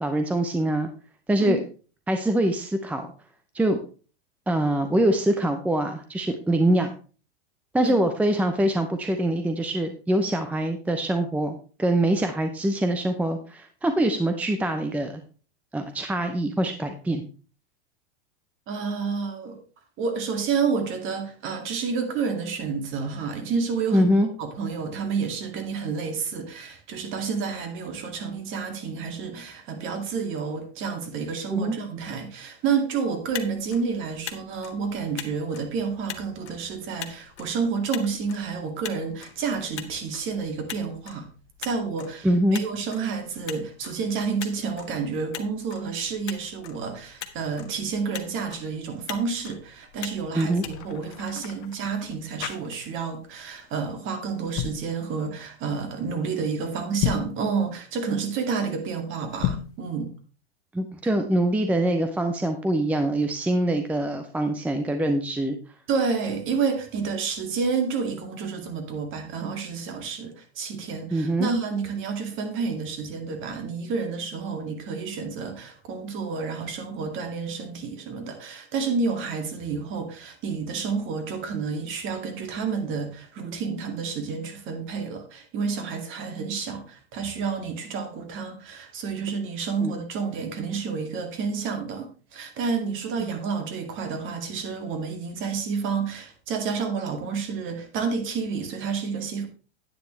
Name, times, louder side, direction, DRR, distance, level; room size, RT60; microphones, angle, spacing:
voice 1, 0.0-0.9 1.3-1.6 2.1-3.1 3.5-3.8 4.5-6.9 7.7-15.2 15.7-17.2 23.9-24.3 31.5-31.8 42.2-42.6 50.3-50.6 60.7-65.6 71.1-71.5 89.8-90.0, right 1 dB, 5° right, 0.6 m, -24 dB
voice 2, 18.7-19.6 20.0-24.1 24.4-41.3 41.6-60.1 65.9-99.5, right 5 dB, 35° right, 2.2 m, -29 dB
Motor vehicle (road), 33.1-51.7, left 10 dB, 85° left, 1.4 m, -43 dB
sound 1, 50.2-53.2 53.5-53.8 54.4-54.9 56.9-57.4 59.3-59.8, left 11 dB, 40° left, 1.2 m, -32 dB
10.0 x 9.4 x 3.2 m
supercardioid pair, 135°, 33 cm